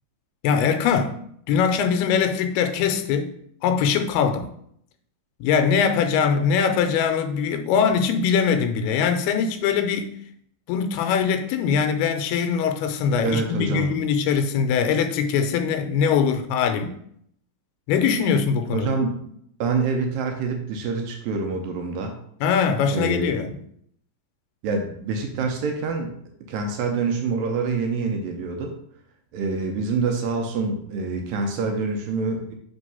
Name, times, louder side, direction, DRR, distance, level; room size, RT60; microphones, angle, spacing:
voice 1, 0.4-1.2 1.5-3.3 3.6-4.5 5.4-10.2 10.7-17.0 17.9-18.9 22.4-23.5, left 6 dB, 85° left, 2.6 m, -22 dB
voice 2, 13.2-13.9 18.7-19.3 19.6-22.2 22.9-23.3 24.6-26.1 26.5-28.8 29.3-32.5, right 4 dB, 75° right, 2.2 m, -26 dB
5.5 x 3.5 x 5.4 m
omnidirectional pair, 4.4 m